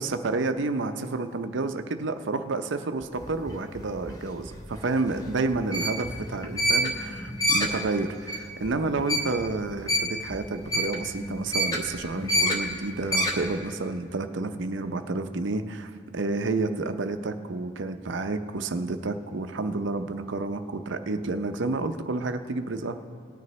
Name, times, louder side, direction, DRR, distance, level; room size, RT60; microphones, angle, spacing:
voice 1, 0.0-23.1, right 3 dB, 60° right, 8 dB, 0.6 m, -30 dB
sound 1, 3.0-13.6, equal, 20° left, 0.9 m, -29 dB
19.0 x 9.4 x 3.2 m, 2.1 s
head